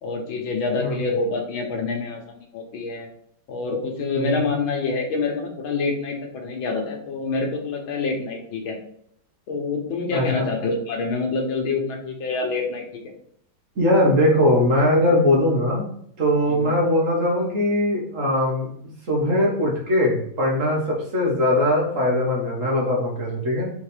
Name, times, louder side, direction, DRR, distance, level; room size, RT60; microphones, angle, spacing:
voice 1, 0.0-3.1 3.5-8.8 9.5-13.0 16.5-16.7, left 3 dB, 85° left, 2 dB, 2.0 m, -27 dB
voice 2, 10.1-10.5 13.8-15.9 16.2-18.7 19.1-23.7, left 1 dB, 45° right, -2 dB, 1.7 m, -20 dB
5.1 x 3.7 x 5.1 m, 0.67 s
omnidirectional pair, 2.1 m